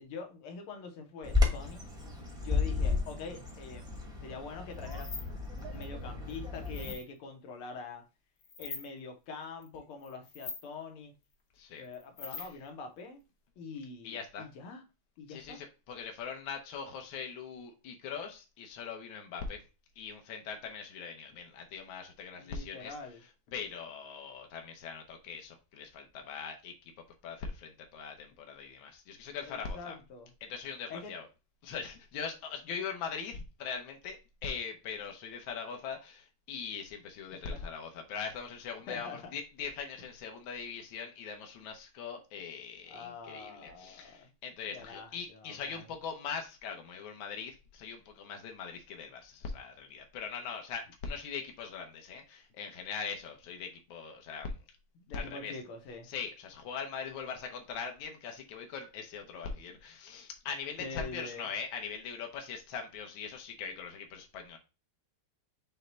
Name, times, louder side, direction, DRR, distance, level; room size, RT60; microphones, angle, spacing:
voice 1, 0.0-1.9 2.4-3.9 4.2-8.0 8.6-11.1 11.8-13.2 13.6-14.8 15.2-15.6 22.3-23.2 29.5-30.3 30.9-31.1 37.5-37.7 38.9-39.4 42.9-44.3 44.7-45.9 55.0-56.1 60.8-61.5, left 4 dB, 85° left, 1.8 m, -45 dB
Bird vocalization bird call bird song, 1.2-6.9, left 4 dB, 5° right, 0.5 m, -33 dB
sound 1, 4.7-5.3 5.6-5.8 6.3-7.0 8.4-8.9 9.6-9.8 10.0-10.7 11.8-12.7, left 4 dB, 50° left, 1.3 m, -43 dB
voice 2, 14.0-14.4 15.3-19.6 20.0-22.9 23.5-26.7 27.2-30.0 30.4-31.3 31.6-54.5 55.1-55.5 56.1-64.6, left 6 dB, 70° left, 1.5 m, -41 dB
6.2 x 2.2 x 3.9 m
omnidirectional pair, 2.3 m